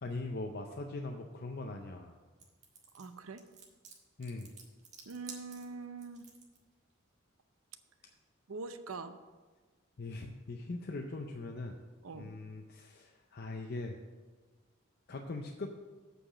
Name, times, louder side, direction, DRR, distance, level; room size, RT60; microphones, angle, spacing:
voice 1, 0.0-2.1 4.2-4.5 10.0-11.8 12.1-14.0 15.1-15.7, left 2 dB, 50° left, 3 dB, 0.5 m, -41 dB
sound 1, 2.4-6.6, right 5 dB, 35° right, 1.4 m, -52 dB
voice 2, 2.9-3.4 5.1-6.3 8.5-9.1 12.0-12.3, right 4 dB, 90° right, 10 dB, 0.6 m, -43 dB
7.8 x 4.9 x 7.3 m, 1.3 s
head